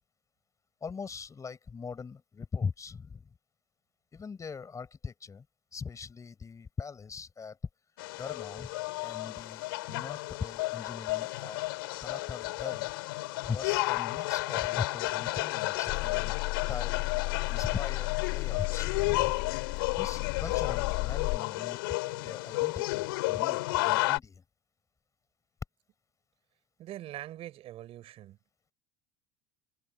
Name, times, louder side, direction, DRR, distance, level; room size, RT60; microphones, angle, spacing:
voice 1, 0.8-3.3 4.1-5.4 5.7-7.6 8.1-8.7 9.0-11.6 12.0-12.9 13.4-16.3 16.7-17.0 17.5-19.3 20.0-21.8 22.1-24.4, left 5 dB, 30° left, 6.8 m, -40 dB
sound 1, 8.0-24.2, left 21 dB, 85° left, 4.9 m, -32 dB
sound 2, 15.9-21.4, left 22 dB, 70° left, 6.3 m, -34 dB
voice 2, 26.8-28.4, right 13 dB, 55° right, 7.3 m, -43 dB
supercardioid pair, 90°, 12 cm